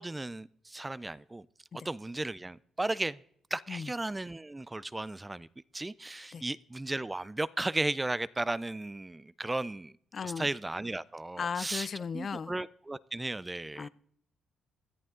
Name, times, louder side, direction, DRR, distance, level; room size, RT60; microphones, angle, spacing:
voice 1, 0.0-1.5 1.7-3.2 3.5-5.5 5.7-9.9 10.2-11.9 12.1-13.9, right 2 dB, 15° right, 0.4 m, -35 dB
voice 2, 10.1-10.5 11.4-12.5 13.8-13.9, left 6 dB, 45° left, 0.5 m, -36 dB
17.0 x 10.5 x 3.8 m
cardioid pair, 90°, 0 cm